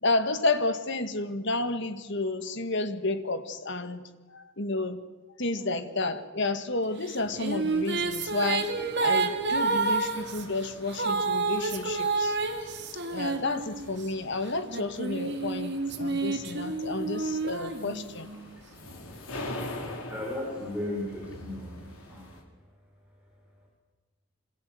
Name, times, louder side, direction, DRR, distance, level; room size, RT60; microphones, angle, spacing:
voice 1, 0.0-4.0 4.3-5.0 5.4-8.7 9.0-12.7 13.0-18.3, left 2 dB, 55° left, 9 dB, 2.0 m, -31 dB
sound 1, 7.1-14.1 14.7-18.4, right 3 dB, 55° right, 3.0 m, -29 dB
sound 2, 7.2-22.4, left 1 dB, 80° left, 5.1 m, -45 dB
voice 2, 20.1-21.8 22.1-22.3, left 1 dB, 5° right, -3 dB, 6.1 m, -35 dB
26.5 x 26.0 x 7.9 m, 1.3 s
head